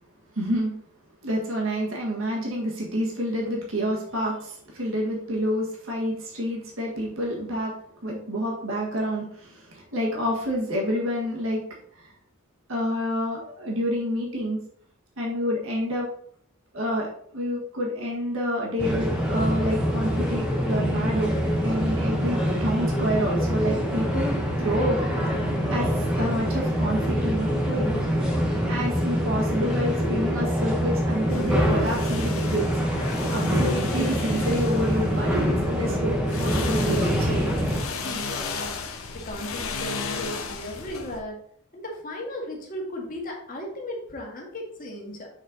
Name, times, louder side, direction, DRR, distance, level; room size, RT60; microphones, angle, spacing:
voice 1, 0.3-0.7 1.2-7.7 8.0-11.6 12.0-12.1 12.7-14.6 15.2-16.1 16.7-17.1 17.3-25.0 25.7-27.9 28.1-28.4 28.7-32.7 33.3-37.4, equal, 65° right, -2 dB, 1.6 m, -28 dB
sound 1, 18.8-37.8, equal, 5° right, 1.0 m, -25 dB
sound 2, 31.3-36.0 36.3-41.2, left 5 dB, 75° left, 0.9 m, -35 dB
voice 2, 38.0-38.8 39.1-41.4 41.7-45.3, left 1 dB, 40° left, -1 dB, 1.6 m, -36 dB
6.5 x 4.3 x 3.8 m, 0.62 s
head